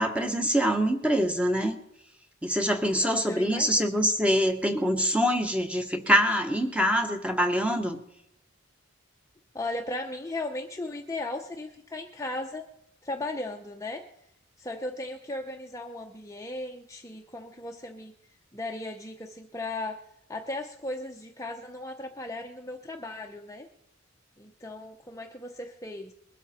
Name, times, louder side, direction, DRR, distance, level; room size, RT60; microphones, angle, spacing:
voice 1, 0.0-1.8 2.4-8.0, equal, 5° right, 5 dB, 1.2 m, -25 dB
voice 2, 3.0-4.0 9.5-12.7 13.0-14.0 14.6-18.1 18.5-20.0 20.3-23.7 24.4-26.1, left 2 dB, 15° left, 2 dB, 0.8 m, -36 dB
21.5 x 12.5 x 4.3 m, 0.79 s
head